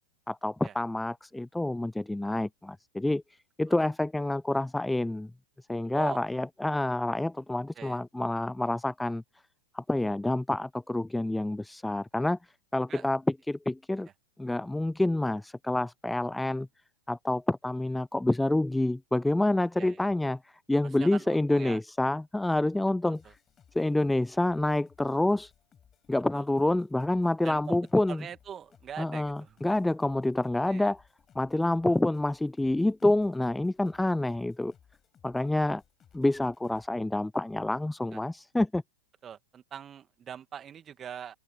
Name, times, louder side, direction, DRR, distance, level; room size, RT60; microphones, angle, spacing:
voice 1, 0.3-3.2 3.6-5.3 5.7-9.2 9.7-12.4 12.7-13.2 13.5-14.1 14.4-16.7 17.1-23.2 23.7-25.5 26.1-28.2 29.0-31.0 31.4-34.7 35.2-35.8 36.1-38.8, left 1 dB, 5° left, 0.3 m, -28 dB
voice 2, 20.8-21.8 23.0-23.3 26.3-26.4 27.4-27.8 28.1-29.6 30.7-30.9 38.1-38.2 39.2-41.4, right 8 dB, 25° right, 2.3 m, -43 dB
sound 1, 23.1-36.9, left 8 dB, 25° left, 6.7 m, -62 dB
figure-of-eight pair, 100°, 0 cm